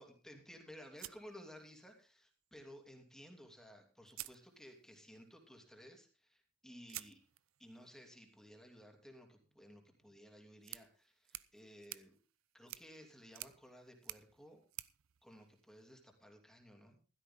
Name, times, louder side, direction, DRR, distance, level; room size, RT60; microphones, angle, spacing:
voice 1, 0.0-7.2 7.6-12.2 12.5-14.6 15.2-17.0, equal, 5° left, 3 dB, 2.8 m, -57 dB
sound 1, 1.0-2.1 3.4-3.5 4.0-5.1 6.9-16.1, right 16 dB, 75° right, 0.6 m, -53 dB
15.5 x 12.5 x 3.7 m, 0.33 s
head